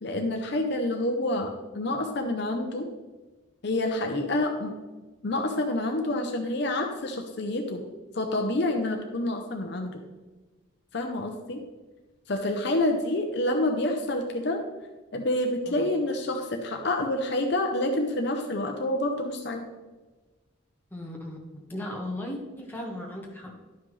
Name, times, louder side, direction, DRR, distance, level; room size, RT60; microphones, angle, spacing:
voice 1, 0.0-2.9 3.6-4.8 5.2-7.8 8.1-10.0 10.9-11.6 12.3-14.6 15.1-19.6, left 1 dB, 55° left, 3 dB, 0.7 m, -28 dB
voice 2, 20.9-21.4 21.7-23.6, left 1 dB, 10° left, -2 dB, 1.3 m, -36 dB
11.0 x 5.7 x 3.2 m, 1.2 s
head